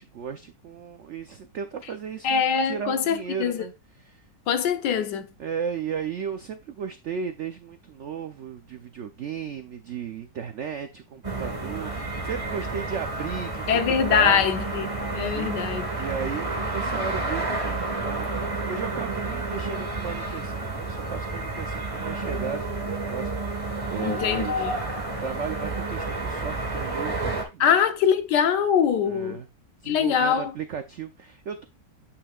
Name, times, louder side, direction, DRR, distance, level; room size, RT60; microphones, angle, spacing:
voice 1, 0.0-3.7 4.0-4.2 5.4-13.7 14.1-14.4 15.2-15.6 15.9-24.7 25.2-27.8 29.0-29.5 29.8-31.6, right 7 dB, 80° right, 0.6 m, -35 dB
voice 2, 2.2-3.6 4.5-5.3 13.7-15.9 24.0-24.8 27.6-29.4 29.9-30.5, left 7 dB, 75° left, 1.4 m, -23 dB
sound 1, 11.2-27.4, right 2 dB, 20° right, 1.4 m, -30 dB
8.8 x 5.6 x 2.3 m
omnidirectional pair, 1.9 m